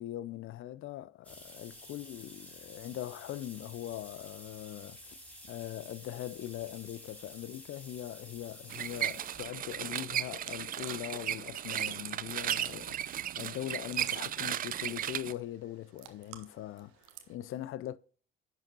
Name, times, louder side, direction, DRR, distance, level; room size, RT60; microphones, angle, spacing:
voice 1, 0.0-5.2 5.4-13.0 13.4-18.0, left 13 dB, 40° left, 0.5 m, -41 dB
sound 1, 1.2-9.5 10.4-10.5 11.7-11.8 12.2-12.3 12.5-12.6, equal, 5° left, 3.3 m, -51 dB
sound 2, 8.7-15.3, right 11 dB, 30° right, 0.4 m, -35 dB
sound 3, 10.1-17.3, right 12 dB, 60° right, 1.0 m, -53 dB
10.0 x 6.7 x 2.9 m
figure-of-eight pair, 45°, 32 cm